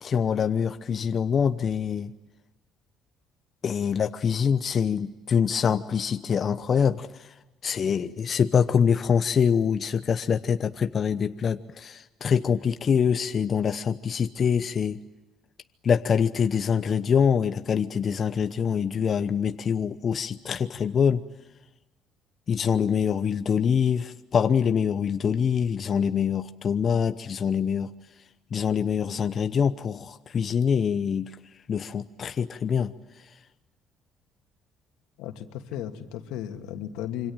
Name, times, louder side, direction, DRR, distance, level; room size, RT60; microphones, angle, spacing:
voice 1, 0.0-2.1 3.6-7.1 7.6-15.0 15.8-21.2 22.5-27.9 28.5-31.3 31.7-32.9, left 7 dB, 35° left, 10 dB, 0.9 m, -24 dB
voice 2, 35.2-37.3, left 11 dB, 90° left, 6 dB, 2.6 m, -35 dB
26.5 x 25.5 x 8.9 m, 1.1 s
cardioid pair, 140°, 0 cm